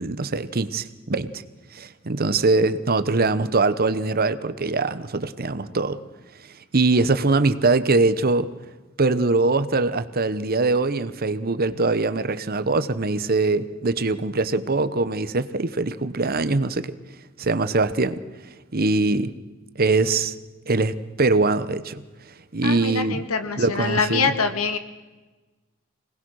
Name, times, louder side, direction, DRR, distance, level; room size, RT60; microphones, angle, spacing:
voice 1, 0.0-1.4 1.7-6.0 6.7-8.5 9.0-17.0 17.4-18.2 18.7-19.3 19.8-20.3 20.7-22.0 22.5-23.2 23.6-24.3, right 3 dB, 45° right, 13 dB, 1.0 m, -22 dB
voice 2, 22.6-24.8, left 4 dB, 85° left, 8 dB, 1.8 m, -24 dB
25.5 x 19.0 x 6.4 m, 1.2 s
head